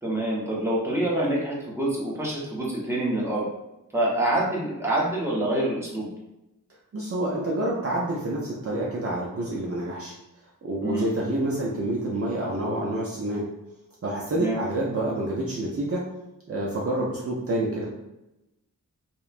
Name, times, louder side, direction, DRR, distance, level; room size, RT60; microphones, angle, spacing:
voice 1, 0.0-3.5 3.9-6.1 10.8-11.0 14.3-14.6, right 1 dB, 10° right, -5 dB, 0.8 m, -26 dB
voice 2, 6.9-10.1 10.6-13.5 14.0-16.1 16.5-17.9, right 1 dB, 45° right, -5 dB, 0.5 m, -28 dB
2.9 x 2.1 x 2.4 m, 0.93 s
wide cardioid pair, 80°, 34 cm